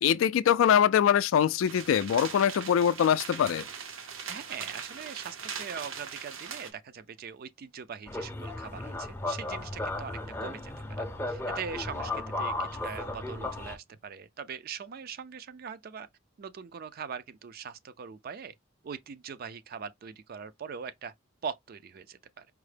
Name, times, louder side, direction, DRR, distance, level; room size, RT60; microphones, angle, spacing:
voice 1, 0.0-3.6, left 9 dB, 75° left, 0.3 m, -23 dB
sound 1, 1.7-6.7, right 6 dB, 75° right, 0.8 m, -40 dB
voice 2, 4.3-10.7 11.3-16.1 16.4-18.5 18.8-21.1 21.4-22.5, right 6 dB, 50° right, 0.4 m, -41 dB
sound 2, 8.1-13.8, left 2 dB, 10° left, 0.5 m, -35 dB
4.7 x 2.1 x 3.2 m
head